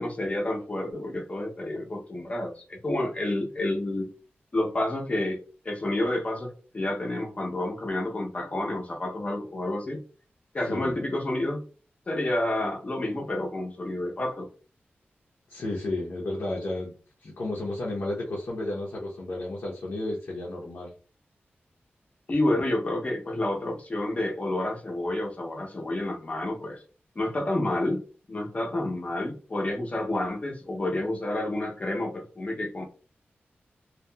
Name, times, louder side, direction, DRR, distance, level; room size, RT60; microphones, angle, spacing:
voice 1, 0.0-4.1 4.5-5.4 5.6-10.0 10.5-11.6 12.1-14.5 22.3-26.8 27.2-28.0 28.3-32.9, left 1 dB, 35° left, 1 dB, 0.6 m, -29 dB
voice 2, 15.5-16.9 17.2-20.9, left 2 dB, 75° left, -4 dB, 0.7 m, -32 dB
2.8 x 2.2 x 2.2 m, 0.38 s
wide cardioid pair, 130°, 4 cm